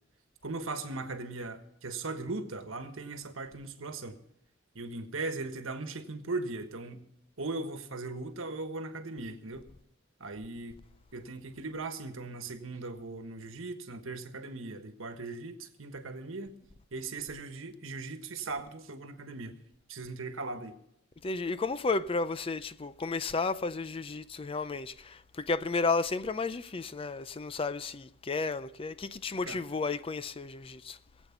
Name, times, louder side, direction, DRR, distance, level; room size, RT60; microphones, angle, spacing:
voice 1, 0.4-4.2 4.7-7.0 7.4-9.6 10.2-10.8 11.1-16.5 16.9-19.5 19.9-20.7 29.4-29.6, right 3 dB, 85° right, 1.4 m, -38 dB
voice 2, 21.2-31.0, left 3 dB, 25° left, 0.4 m, -33 dB
20.5 x 8.2 x 5.8 m
head